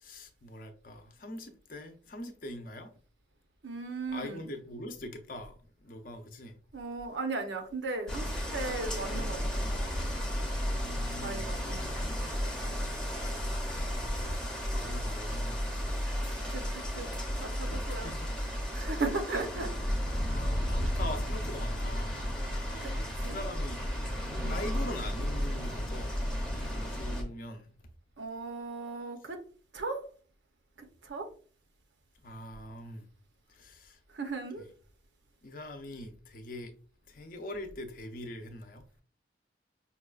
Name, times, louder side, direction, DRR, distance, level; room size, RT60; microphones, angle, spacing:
voice 1, 0.0-2.9 4.1-5.6 5.8-6.6 10.8-11.5 13.8-15.9 17.9-18.3 20.3-22.1 22.6-23.8 24.5-26.2 26.6-27.7 32.2-33.1 33.5-34.0 34.6-34.7 35.4-36.7 37.1-38.8, left 1 dB, 50° left, 0.6 m, -43 dB
voice 2, 3.6-4.5 6.7-9.7 11.2-11.9 16.3-16.6 17.0-17.1 17.4-18.1 18.7-19.9 22.8-22.9 23.2-23.4 24.4-24.6 28.2-29.4 29.7-30.0 30.8-31.3 34.1-34.7, right 3 dB, 80° right, 0.8 m, -37 dB
sound 1, 8.1-27.2, equal, 5° left, 0.6 m, -33 dB
5.4 x 2.3 x 2.4 m
head